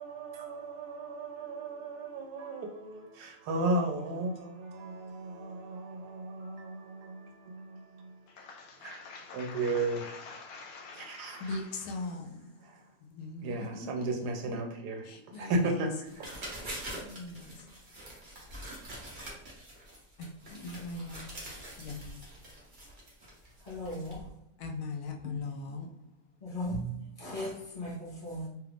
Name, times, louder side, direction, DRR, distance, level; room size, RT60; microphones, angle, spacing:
voice 1, 0.0-8.1 8.8-9.0 9.3-10.0 11.0-11.5 13.4-15.0 15.4-15.9 16.2-16.3, right 2 dB, 90° right, 1.2 m, -34 dB
voice 2, 8.3-12.5 13.0-14.6 15.0-15.9 17.0-17.6 20.2-21.4 21.8-22.2 24.6-25.9, left 3 dB, 75° left, 1.1 m, -41 dB
sound 1, 16.1-24.3, right 1 dB, 40° right, 0.8 m, -45 dB
voice 3, 23.6-24.2 25.2-25.5 26.4-28.5, equal, 40° left, 0.8 m, -37 dB
2.9 x 2.4 x 3.3 m
omnidirectional pair, 1.7 m